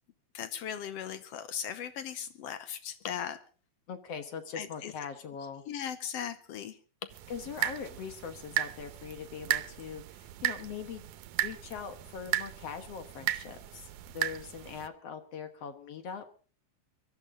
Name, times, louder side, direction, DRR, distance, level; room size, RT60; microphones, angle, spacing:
voice 1, 0.3-3.4 4.5-4.9 5.7-6.8, left 9 dB, 75° left, 12 dB, 1.4 m, -38 dB
voice 2, 3.9-5.6 7.3-11.1 11.4-16.2, left 6 dB, 55° left, 8 dB, 2.0 m, -41 dB
sound 1, 7.1-14.9, right 14 dB, 75° right, 2.1 m, -36 dB
23.5 x 13.0 x 3.8 m, 0.40 s
omnidirectional pair, 3.9 m